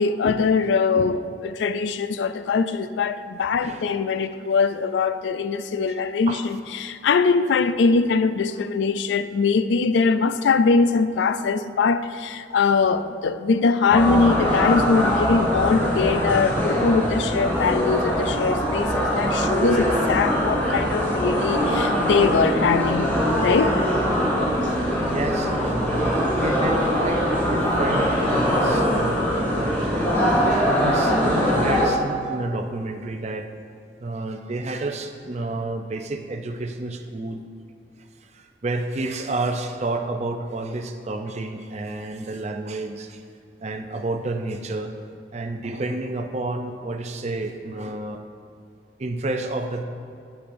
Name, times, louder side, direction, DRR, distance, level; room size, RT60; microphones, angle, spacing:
voice 1, 0.0-23.1 23.4-23.7, left 4 dB, 90° left, 0.3 m, -22 dB
voice 2, 3.5-3.8 5.9-6.0 6.3-6.4 25.1-30.1 30.5-33.5 34.0-37.4 38.3-43.2 43.6-44.9 45.3-48.2 49.0-49.8, right 2 dB, 40° right, 0.5 m, -30 dB
sound 1, 13.9-31.8, equal, 10° left, 2.2 m, -22 dB
9.9 x 8.8 x 2.6 m
head